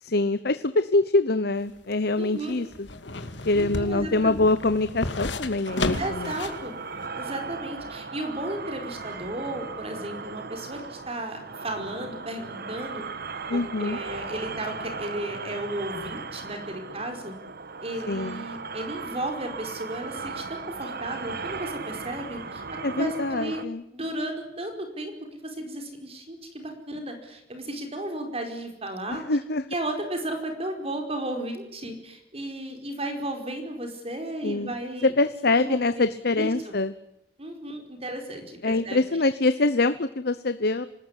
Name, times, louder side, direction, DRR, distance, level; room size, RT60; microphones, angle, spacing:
voice 1, 0.0-2.9 3.4-6.3 13.5-14.0 18.1-18.4 22.8-23.8 29.1-29.6 34.4-34.7 35.0-36.9 38.6-40.8, left 2 dB, 60° left, 12 dB, 1.0 m, -24 dB
sound 1, 1.6-6.7 7.0-7.1, left 2 dB, 90° left, 2.5 m, -33 dB
voice 2, 2.2-2.5 3.5-4.4 6.0-6.7 7.2-13.0 13.5-17.3 17.8-23.6 23.9-29.2 29.7-35.1 35.6-36.0 36.4-36.7 37.4-39.0, right 1 dB, 35° right, 5 dB, 4.9 m, -34 dB
sound 2, 5.7-23.6, right 4 dB, 60° right, 1.5 m, -37 dB
26.5 x 19.5 x 10.0 m, 0.84 s
head